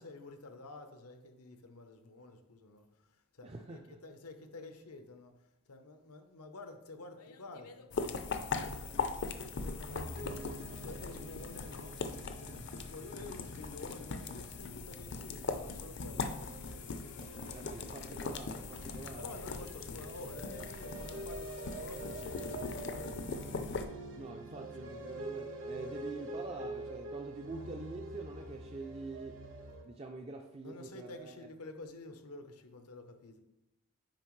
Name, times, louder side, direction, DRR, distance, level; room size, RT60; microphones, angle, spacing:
voice 1, 0.0-2.9 3.3-5.3 5.7-10.4 10.7-12.1 12.4-12.6 12.9-16.8 19.2-23.5 30.6-33.4, left 2 dB, 85° left, 0.8 m, -50 dB
voice 2, 3.4-4.0 17.5-19.3 24.1-29.4 29.8-31.5, right 3 dB, 25° right, 0.4 m, -45 dB
sound 1, 7.9-23.9, left 4 dB, 50° left, 0.5 m, -40 dB
sound 2, 9.9-29.8, right 2 dB, 60° right, 1.2 m, -46 dB
9.0 x 5.0 x 3.1 m
head